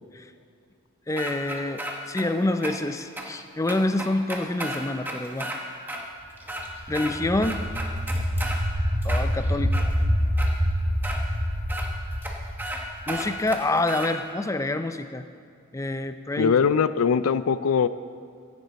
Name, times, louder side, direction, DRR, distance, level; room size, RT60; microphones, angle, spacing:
voice 1, 1.1-1.8 2.1-5.5 6.9-7.6 9.0-9.9 13.1-15.2 15.7-16.5, left 2 dB, 15° left, 9 dB, 0.4 m, -27 dB
sound 1, 1.2-2.2 2.6-2.7 3.2-3.3 3.7-5.6 5.9-6.0 6.4-7.1 7.4-8.6 9.0-9.9 10.4-10.5 11.0-11.2 11.7-11.8 12.2-12.3 12.6-12.8 13.1-14.1, right 1 dB, 10° right, 1.0 m, -33 dB
sound 2, 6.5-13.3, equal, 50° right, 3.7 m, -26 dB
voice 2, 16.4-17.9, left 6 dB, 90° left, 15 dB, 0.4 m, -21 dB
15.5 x 9.8 x 4.1 m, 2.3 s
head